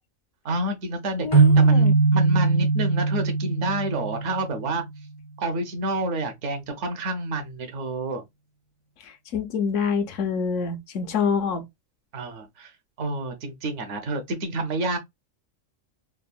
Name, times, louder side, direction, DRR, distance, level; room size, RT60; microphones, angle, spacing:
voice 1, 0.4-4.8 5.4-8.2 12.1-12.7 13.0-15.0, right 1 dB, 70° right, 1.0 m, -29 dB
voice 2, 1.2-1.9 9.0-11.6, left 5 dB, 75° left, 0.9 m, -26 dB
sound 1, 1.3-4.8, right 4 dB, 30° left, 0.5 m, -20 dB
3.5 x 2.0 x 2.2 m
omnidirectional pair, 1.3 m